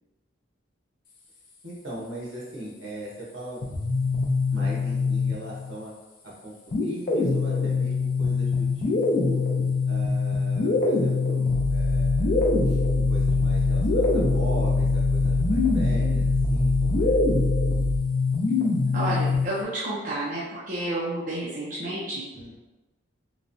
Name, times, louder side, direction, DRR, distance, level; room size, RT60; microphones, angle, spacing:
voice 1, 1.6-3.6 4.5-5.9 6.2-9.4 9.9-12.8 13.1-17.1 22.3-22.5, right 1 dB, 75° right, -5 dB, 1.0 m, -39 dB
sound 1, 3.6-5.7 6.7-19.6, left 4 dB, 45° left, 0.4 m, -24 dB
Deep bass noise, 11.5-18.0, equal, 20° left, 0.8 m, -27 dB
voice 2, 18.9-22.2, right 1 dB, 40° right, -8 dB, 0.5 m, -30 dB
3.0 x 2.2 x 2.5 m, 1.1 s
head